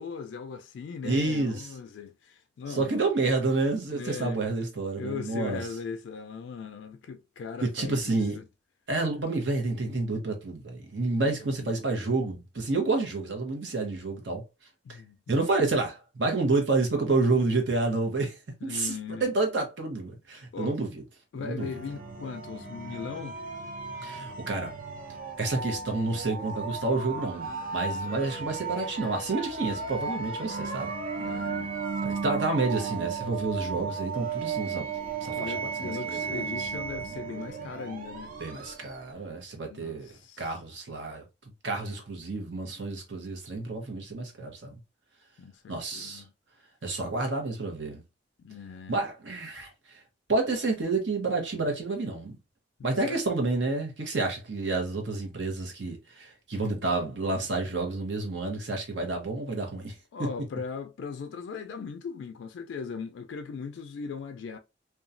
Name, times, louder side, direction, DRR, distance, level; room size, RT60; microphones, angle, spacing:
voice 1, 0.0-3.0 3.9-4.4 5.0-8.4 11.1-11.7 14.8-15.2 18.6-19.3 20.5-20.8 21.3-23.4 31.2-31.7 35.4-38.3 39.7-40.6 45.4-46.3 48.4-48.9 52.9-53.2 60.1-64.6, left 5 dB, 75° left, 0.3 m, -39 dB
voice 2, 1.0-1.7 2.7-5.6 7.6-8.4 8.9-14.4 14.9-15.0 15.3-21.0 21.4-21.7 24.0-24.7 25.4-30.9 32.0-34.9 35.2-35.5 35.8-36.7 38.4-41.2 41.6-44.7 45.7-46.2 46.8-48.0 48.9-50.0 50.3-52.4 52.8-59.9, right 3 dB, 70° right, 0.9 m, -29 dB
sound 1, 21.6-39.1, right 5 dB, 50° right, 0.5 m, -35 dB
2.9 x 2.2 x 2.5 m
head